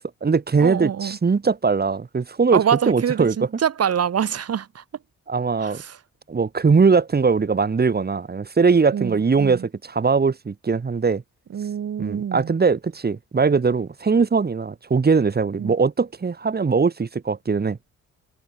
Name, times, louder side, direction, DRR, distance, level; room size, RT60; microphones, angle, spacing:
voice 1, 0.0-2.6 2.9-3.3 5.3-5.8 6.3-11.2 12.0-17.8, right 5 dB, 30° right, 4.4 m, -20 dB
voice 2, 0.6-1.2 2.5-4.8 5.6-6.0 8.9-9.7 11.5-12.5 15.6-15.8, right 8 dB, 55° right, 3.9 m, -25 dB
cardioid pair, 90°, 30 cm